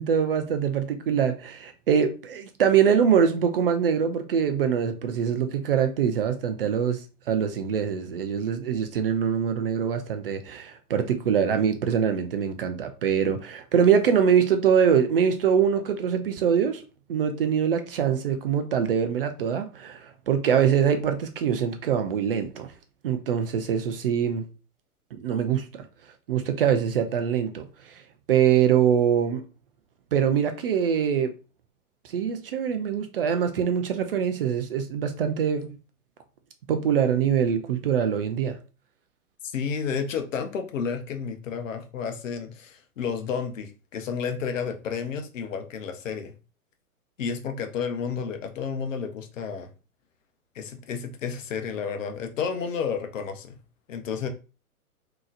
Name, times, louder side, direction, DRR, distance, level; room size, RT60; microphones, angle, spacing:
voice 1, 0.0-7.0 7.3-16.8 17.1-22.7 23.0-24.5 25.1-25.8 26.3-28.0 28.3-29.4 30.1-31.3 32.1-35.7 36.7-38.6, right 8 dB, 40° right, 0.4 m, -23 dB
voice 2, 39.5-46.3 47.2-49.7 50.5-53.6 53.9-54.3, left 6 dB, 60° left, 0.8 m, -31 dB
3.7 x 2.9 x 2.4 m
figure-of-eight pair, 115°, 44 cm